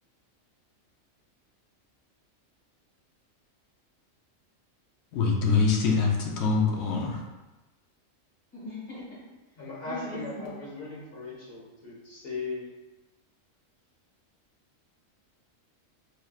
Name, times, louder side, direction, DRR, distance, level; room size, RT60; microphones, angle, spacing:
voice 1, 5.1-7.2, left 4 dB, 65° left, 0 dB, 0.8 m, -24 dB
voice 2, 8.5-9.2 9.9-10.5, left 1 dB, 10° left, -9 dB, 1.4 m, -39 dB
voice 3, 9.5-12.7, left 3 dB, 45° left, -6 dB, 1.3 m, -38 dB
4.3 x 3.0 x 2.3 m, 1.1 s
omnidirectional pair, 1.4 m